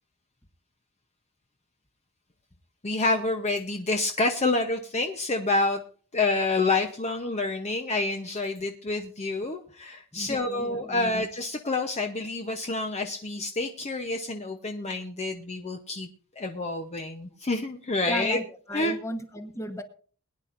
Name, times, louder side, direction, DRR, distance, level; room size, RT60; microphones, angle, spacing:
voice 1, 2.8-5.8 6.1-16.1 16.4-18.4 18.7-18.9, left 2 dB, 30° left, 4 dB, 0.8 m, -28 dB
voice 2, 10.1-11.2 18.0-19.8, left 1 dB, 15° left, 7 dB, 1.1 m, -35 dB
21.5 x 10.0 x 2.5 m, 0.42 s
head